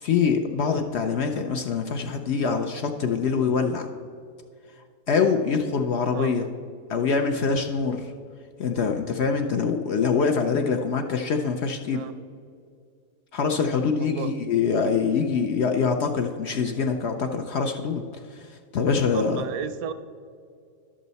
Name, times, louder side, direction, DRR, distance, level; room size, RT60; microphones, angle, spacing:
voice 1, 0.0-3.9 5.1-6.5 6.9-8.1 8.6-12.0 13.3-18.0 18.3-19.4, left 5 dB, 65° left, 5 dB, 0.7 m, -24 dB
voice 2, 6.1-6.5 11.9-12.1 14.0-14.3 19.1-19.9, right 8 dB, 80° right, 11 dB, 1.0 m, -33 dB
11.0 x 7.5 x 4.0 m, 2.3 s
omnidirectional pair, 1.5 m